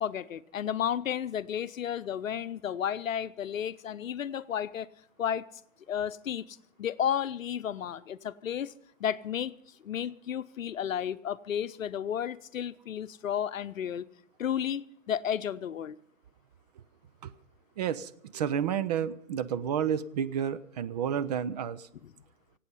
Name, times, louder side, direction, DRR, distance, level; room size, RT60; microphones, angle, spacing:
voice 1, 0.0-4.9 5.2-5.4 5.9-8.7 9.0-9.5 9.8-14.1 14.4-16.0 22.0-22.1, left 9 dB, 80° left, 0.8 m, -32 dB
voice 2, 17.8-21.9, right 8 dB, 35° right, 0.5 m, -31 dB
24.5 x 8.5 x 5.5 m
hypercardioid pair, 135°, 39 cm